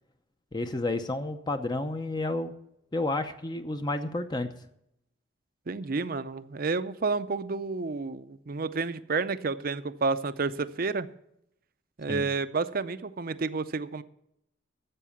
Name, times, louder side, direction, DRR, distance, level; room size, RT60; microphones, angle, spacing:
voice 1, 0.5-2.5 2.9-4.5 12.1-12.3, left 2 dB, 20° left, 8 dB, 0.6 m, -31 dB
voice 2, 5.7-11.1 12.0-14.0, right 4 dB, 45° right, 13 dB, 0.6 m, -30 dB
12.5 x 8.1 x 7.0 m, 0.78 s
head